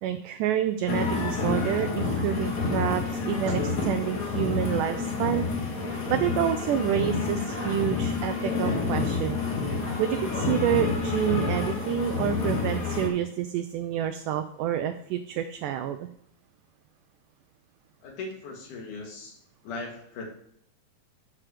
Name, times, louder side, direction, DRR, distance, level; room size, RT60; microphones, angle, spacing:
voice 1, 0.0-5.5 6.1-9.4 10.0-16.1, right 10 dB, 80° right, 7 dB, 1.9 m, -28 dB
sound 1, 0.9-13.1, left 4 dB, 40° left, 1.4 m, -29 dB
voice 2, 18.0-19.4 19.6-20.2, left 3 dB, 65° left, 2 dB, 3.3 m, -38 dB
11.0 x 6.0 x 5.0 m, 0.68 s
omnidirectional pair, 4.0 m